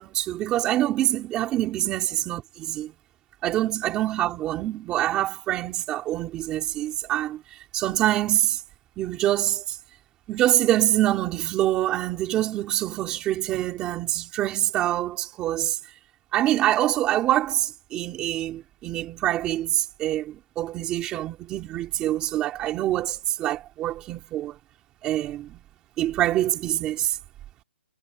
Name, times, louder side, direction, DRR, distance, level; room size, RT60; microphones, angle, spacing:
voice 1, 0.0-2.0 2.3-2.9 3.4-8.6 9.0-9.8 10.3-15.8 16.3-24.6 25.0-25.6 26.0-27.2, right 13 dB, 10° right, 4.0 m, -25 dB
hypercardioid pair, 175°, 7 cm